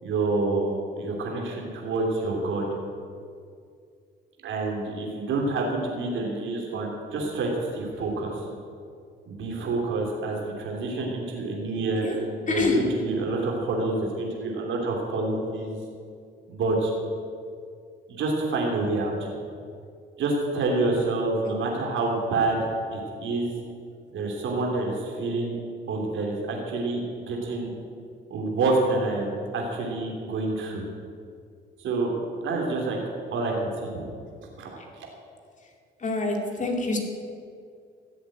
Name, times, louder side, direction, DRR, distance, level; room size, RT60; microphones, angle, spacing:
voice 1, 0.0-2.7 4.4-8.4 9.3-12.1 12.4-15.8 16.5-16.9 18.1-19.3 20.2-23.5 24.1-25.5 25.9-27.7 28.3-30.8 31.8-32.1 32.4-33.0 33.3-34.0 34.6-35.1, right 3 dB, 75° right, -1 dB, 3.1 m, -27 dB
voice 2, 12.5-12.9 21.4-21.7 34.8-34.9 36.0-37.0, left 3 dB, 40° left, 2 dB, 2.5 m, -26 dB
15.5 x 8.0 x 8.8 m, 2.3 s
cardioid pair, 90°, 20 cm